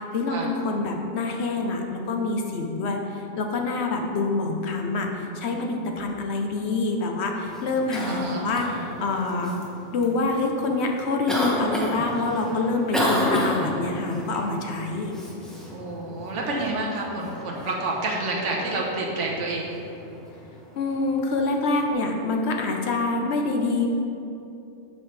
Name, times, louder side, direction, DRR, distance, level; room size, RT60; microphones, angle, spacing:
voice 1, 0.0-9.5 9.9-15.1 20.8-23.9, left 3 dB, 60° left, 2 dB, 1.0 m, -26 dB
Cough, 7.4-21.9, equal, ahead, 0.8 m, -33 dB
voice 2, 8.1-8.4 15.7-19.8, right 2 dB, 70° right, -2 dB, 1.3 m, -29 dB
8.7 x 5.3 x 3.2 m, 2.7 s
omnidirectional pair, 1.3 m